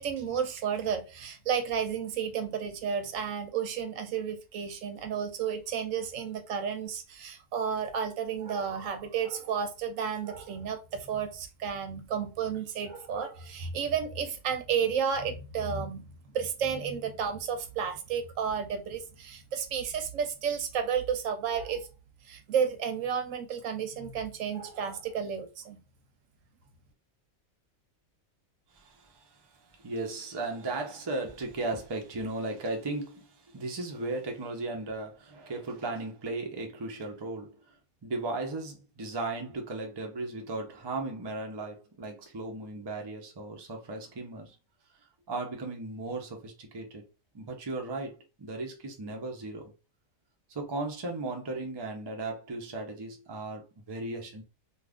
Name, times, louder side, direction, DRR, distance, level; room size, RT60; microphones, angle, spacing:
voice 1, 0.0-16.1 16.3-21.9 22.2-25.8, right 7 dB, 75° right, 1.0 m, -32 dB
voice 2, 28.7-37.7 38.0-44.6 45.3-47.1 47.3-49.7 50.5-54.4, right 2 dB, 35° right, 0.4 m, -36 dB
2.4 x 2.4 x 3.4 m
omnidirectional pair, 1.4 m